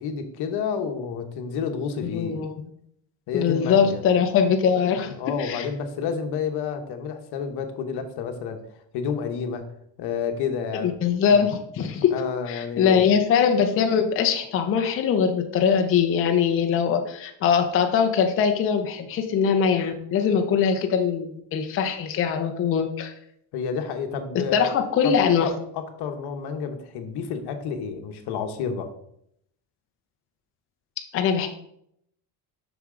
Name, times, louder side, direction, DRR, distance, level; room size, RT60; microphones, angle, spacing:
voice 1, 0.0-2.4 3.3-4.0 5.2-8.6 8.9-9.6 10.0-10.9 11.3-11.4 12.1-13.1 23.5-24.8 25.0-28.9, left 6 dB, 60° left, 6 dB, 1.0 m, -30 dB
voice 2, 2.0-2.5 3.3-5.7 10.7-12.1 12.5-23.1 24.5-25.5 31.1-31.5, left 7 dB, 30° left, 4 dB, 0.6 m, -22 dB
7.1 x 6.0 x 3.7 m, 0.73 s
cardioid pair, 180°, 46 cm